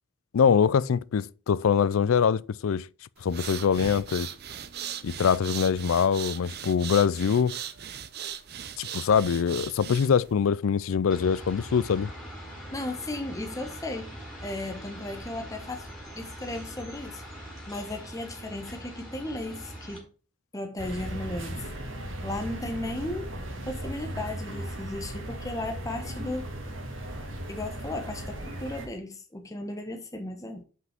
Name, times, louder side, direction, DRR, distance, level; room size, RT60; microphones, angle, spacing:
voice 1, 0.3-2.9 3.2-4.3 5.0-7.6 8.8-12.1, left 6 dB, 85° left, 0.4 m, -24 dB
sound 1, 3.2-10.3, right 9 dB, 50° right, 0.7 m, -38 dB
sound 2, 11.1-20.0, equal, ahead, 4.2 m, -42 dB
voice 2, 12.7-14.2 14.4-15.9 16.1-20.1 20.5-21.7 22.2-23.3 23.6-26.5 27.5-30.6, left 1 dB, 15° left, 1.0 m, -35 dB
sound 3, 20.8-28.9, right 1 dB, 70° right, 1.8 m, -37 dB
6.0 x 5.6 x 5.8 m
head